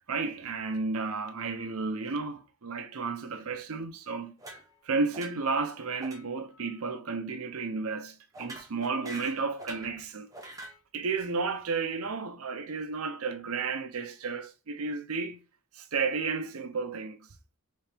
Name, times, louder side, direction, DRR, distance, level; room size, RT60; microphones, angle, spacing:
voice 1, 0.1-4.6 4.8-10.6 10.9-15.4 15.7-17.3, right 4 dB, 75° right, 0.6 m, -33 dB
sound 1, 4.4-4.9 5.1-5.6 6.0-6.2 6.5-6.8 8.3-9.9 10.3-10.8, right 1 dB, 15° right, 1.1 m, -45 dB
4.2 x 3.4 x 3.4 m
head